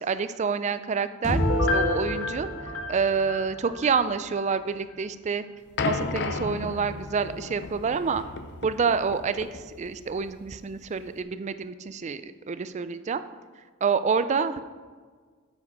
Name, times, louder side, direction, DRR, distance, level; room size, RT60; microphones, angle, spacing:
voice 1, 0.0-1.4 1.7-5.4 5.8-8.2 8.6-13.2 13.8-14.6, right 5 dB, 35° right, 12 dB, 0.3 m, -28 dB
sound 1, 1.2-5.1, equal, 15° left, 2.3 m, -33 dB
Piano, 1.3-4.0 4.4-4.5, left 2 dB, 75° left, 1.1 m, -29 dB
sound 2, 5.8-11.2, left 4 dB, 55° left, 0.6 m, -34 dB
7.9 x 7.2 x 4.8 m, 1.5 s
head